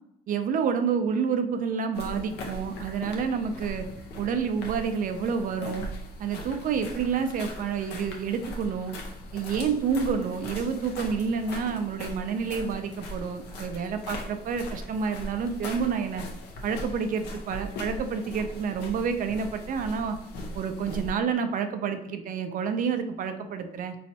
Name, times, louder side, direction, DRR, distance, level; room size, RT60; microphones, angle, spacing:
voice 1, 0.3-3.9 4.2-5.9 6.2-9.0 9.3-16.2 16.6-20.2 20.5-24.0, right 6 dB, 55° right, 8 dB, 0.5 m, -29 dB
sound 1, 1.9-21.1, left 1 dB, 80° left, 0.8 m, -40 dB
4.3 x 3.1 x 2.8 m, 0.78 s
cardioid pair, 110°, 17 cm